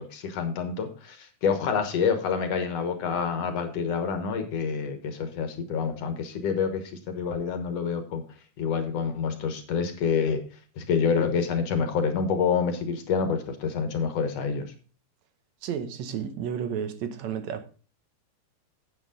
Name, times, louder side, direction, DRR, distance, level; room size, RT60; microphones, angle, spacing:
voice 1, 0.0-8.2 8.6-10.4 10.8-14.7, left 6 dB, 65° left, 2.2 m, -27 dB
voice 2, 15.6-17.7, right 8 dB, 75° right, 2.1 m, -32 dB
9.5 x 8.2 x 3.7 m
omnidirectional pair, 3.4 m